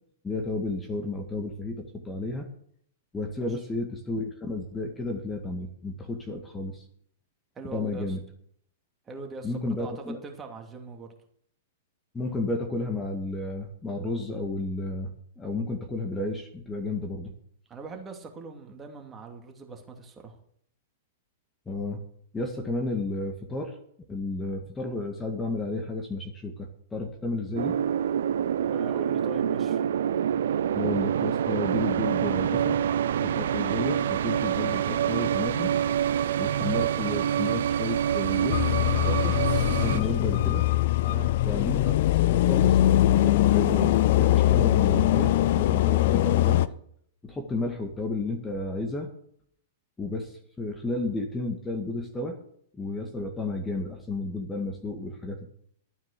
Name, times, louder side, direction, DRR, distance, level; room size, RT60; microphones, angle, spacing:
voice 1, 0.2-2.5 3.1-6.8 7.7-8.2 9.4-10.2 12.1-17.3 21.7-22.0 22.3-23.7 24.1-27.8 30.7-32.8 33.2-35.7 36.4-39.4 39.7-40.7 41.4-41.9 42.3-42.8 43.1-46.6 47.2-49.1 50.0-52.4 52.7-55.5, left 2 dB, 15° left, 3 dB, 2.0 m, -32 dB
voice 2, 3.2-3.6 7.5-8.2 9.1-11.1 17.7-20.4 28.6-29.8 39.8-40.1 41.0-41.3, right 3 dB, 20° right, 3 dB, 2.7 m, -42 dB
sound 1, 27.6-40.0, right 9 dB, 65° right, 0.6 m, -26 dB
sound 2, 38.5-46.7, left 14 dB, 55° left, 0.6 m, -22 dB
13.0 x 9.3 x 6.8 m, 0.66 s
figure-of-eight pair, 105°, 0 cm